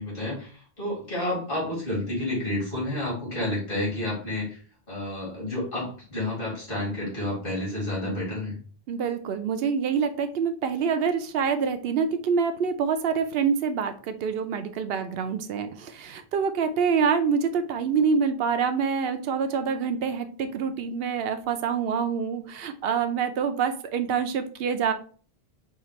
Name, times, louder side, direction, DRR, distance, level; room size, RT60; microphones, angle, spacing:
voice 1, 0.0-4.6 4.9-8.6, left 1 dB, 55° left, -6 dB, 2.5 m, -30 dB
voice 2, 8.9-24.9, right 6 dB, 70° right, 8 dB, 0.8 m, -26 dB
5.7 x 2.5 x 3.0 m, 0.42 s
omnidirectional pair, 1.1 m